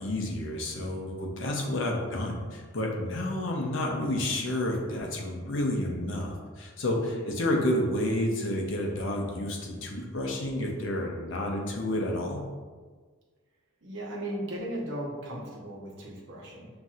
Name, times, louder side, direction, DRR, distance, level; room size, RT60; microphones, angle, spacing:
voice 1, 0.0-12.4, left 1 dB, 60° left, 0 dB, 0.7 m, -30 dB
voice 2, 13.8-16.7, right 1 dB, 60° right, -4 dB, 0.9 m, -37 dB
5.9 x 2.7 x 2.4 m, 1.5 s
head